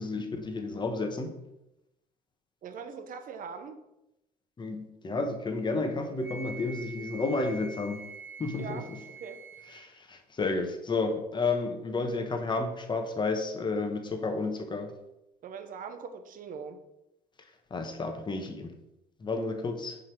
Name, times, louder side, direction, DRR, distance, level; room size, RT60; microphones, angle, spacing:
voice 1, 0.0-1.3 4.6-8.0 8.4-8.8 9.7-14.9 17.7-18.7 19.2-20.0, left 3 dB, 25° left, 6 dB, 1.0 m, -31 dB
voice 2, 2.6-3.8 8.5-8.8 9.2-9.4 15.4-16.8, right 6 dB, 55° right, 8 dB, 0.9 m, -41 dB
Wind instrument woodwind instrument, 6.2-9.9, right 3 dB, 10° right, 1.0 m, -45 dB
5.8 x 5.0 x 4.5 m, 0.89 s
cardioid pair, 110°, 17 cm